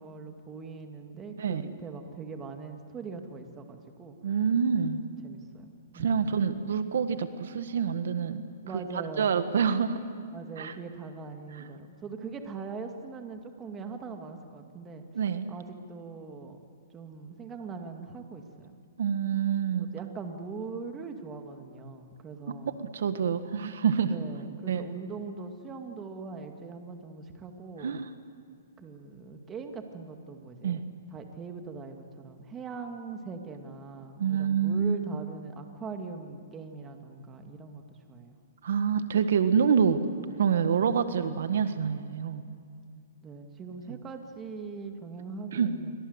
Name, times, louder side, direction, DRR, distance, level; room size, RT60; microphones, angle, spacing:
voice 1, 0.0-4.4 5.2-6.4 8.6-9.4 10.3-15.0 15.5-16.6 16.9-18.8 19.8-22.8 24.1-28.0 28.8-38.4 43.2-46.0, right 4 dB, 15° right, 5 dB, 2.2 m, -41 dB
voice 2, 4.2-5.0 5.9-8.4 9.2-9.9 10.6-10.7 11.6-11.7 15.1-15.5 19.0-19.9 22.5-24.1 24.7-24.9 27.8-28.1 30.6-30.8 34.2-35.2 38.6-40.0 40.4-42.4 45.5-45.7, right 7 dB, 75° right, 10 dB, 1.7 m, -27 dB
28.5 x 24.5 x 8.1 m, 2.3 s
hypercardioid pair, 155°, 0 cm